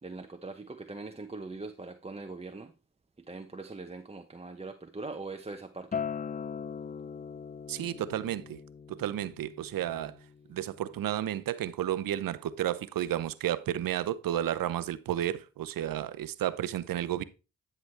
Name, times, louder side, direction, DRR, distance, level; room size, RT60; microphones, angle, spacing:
voice 1, 0.0-2.7 3.3-6.0, right 3 dB, 15° right, 0.8 m, -41 dB
Acoustic guitar, 5.9-11.1, left 6 dB, 25° left, 0.4 m, -40 dB
voice 2, 7.7-8.6 8.9-10.2 10.5-17.2, right 11 dB, 70° right, 0.7 m, -32 dB
10.5 x 5.9 x 3.3 m
supercardioid pair, 45°, 35 cm